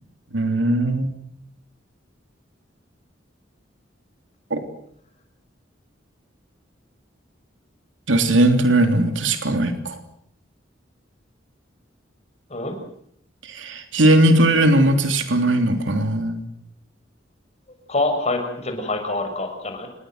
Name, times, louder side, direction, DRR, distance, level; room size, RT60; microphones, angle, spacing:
voice 1, 0.3-1.1 4.5-4.6 8.1-10.0 13.4-16.5, right 1 dB, 90° right, 7 dB, 3.2 m, -18 dB
voice 2, 17.9-19.9, left 2 dB, 35° left, 5 dB, 6.6 m, -25 dB
28.0 x 21.5 x 7.9 m, 0.67 s
head